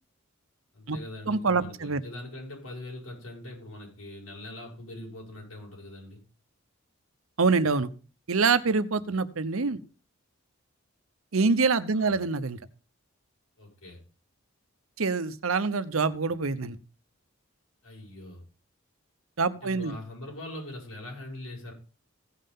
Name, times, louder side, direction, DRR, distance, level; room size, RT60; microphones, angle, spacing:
voice 1, 0.7-6.2 11.9-12.1 13.6-14.0 17.8-18.4 19.6-21.7, left 1 dB, 90° left, -1 dB, 7.0 m, -42 dB
voice 2, 1.3-2.0 7.4-7.9 8.3-9.8 11.3-12.6 15.0-16.8 19.4-19.9, right 4 dB, 85° right, 14 dB, 0.9 m, -25 dB
16.0 x 5.7 x 5.5 m, 0.35 s
head